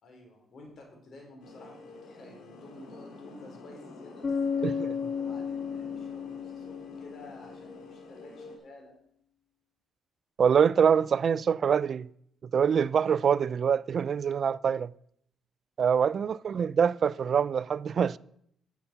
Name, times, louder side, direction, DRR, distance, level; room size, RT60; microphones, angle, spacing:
voice 1, 0.0-4.8 5.2-8.9 16.2-16.3, left 2 dB, 55° left, 4.1 m, -51 dB
sound 1, 1.4-8.6, left 2 dB, 80° left, 2.8 m, -48 dB
Bass guitar, 4.2-7.9, left 6 dB, 40° left, 1.6 m, -33 dB
voice 2, 10.4-12.1 12.5-14.9 15.8-18.2, right 7 dB, 50° right, 0.3 m, -25 dB
10.0 x 7.1 x 6.7 m
cardioid pair, 90°, 0 cm